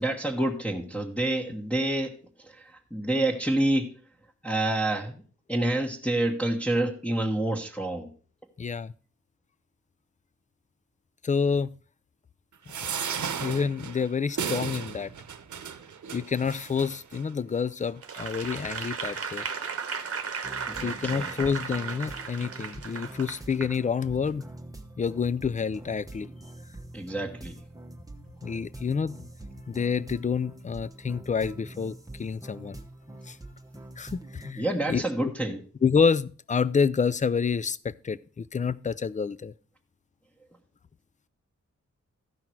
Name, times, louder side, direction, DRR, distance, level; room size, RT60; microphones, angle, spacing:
voice 1, 0.0-4.0 4.4-5.2 5.5-8.1 20.7-21.3 26.9-27.6 34.6-35.6, right 1 dB, 5° left, 1.3 m, -28 dB
voice 2, 8.6-8.9 11.2-11.8 12.8-15.1 16.1-19.4 20.8-24.4 25.0-26.3 28.4-29.2 29.7-32.8 33.3-33.4 34.0-35.3 35.8-39.5, left 6 dB, 25° left, 0.3 m, -28 dB
sound 1, 12.7-17.2 17.9-18.0 18.2-18.3, right 7 dB, 75° right, 0.9 m, -35 dB
Applause / Crowd, 18.0-23.7 24.3-24.4, right 6 dB, 50° right, 1.0 m, -35 dB
sound 2, 20.4-34.5, right 1 dB, 10° right, 1.0 m, -45 dB
14.5 x 5.8 x 4.6 m
wide cardioid pair, 130°, 30 cm